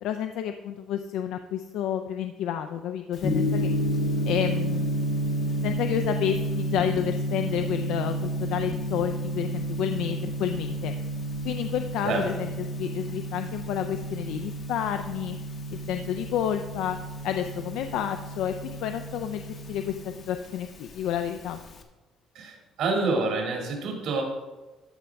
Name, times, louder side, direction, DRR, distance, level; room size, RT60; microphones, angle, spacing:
voice 1, 0.0-3.7 4.2-4.9 5.6-11.0 11.4-15.4 15.7-17.0 17.2-19.4 19.7-21.6, left 9 dB, 70° left, 7 dB, 0.4 m, -30 dB
Gong, 3.2-21.8, right 1 dB, 40° left, 0.7 m, -31 dB
voice 2, 22.3-24.2, right 3 dB, 65° right, 1 dB, 2.0 m, -27 dB
13.0 x 5.2 x 3.4 m, 1.2 s
cardioid pair, 160°, 0 cm